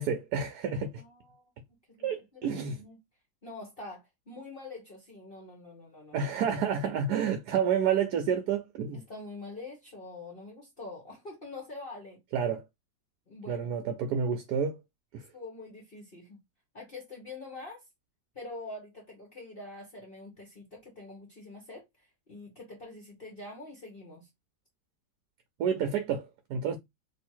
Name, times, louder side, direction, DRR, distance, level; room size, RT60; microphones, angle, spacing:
voice 1, 0.0-0.9 2.0-2.8 6.1-9.0 12.3-12.6 13.5-14.7 15.1-15.2 25.6-26.8, right 7 dB, 70° right, 1.2 m, -29 dB
voice 2, 1.0-1.4 1.9-3.0 3.4-6.3 8.9-12.2 13.3-13.7 15.3-16.4 16.7-17.8 18.3-24.3, left 2 dB, 35° left, 1.3 m, -45 dB
3.5 x 2.8 x 4.4 m
omnidirectional pair, 1.9 m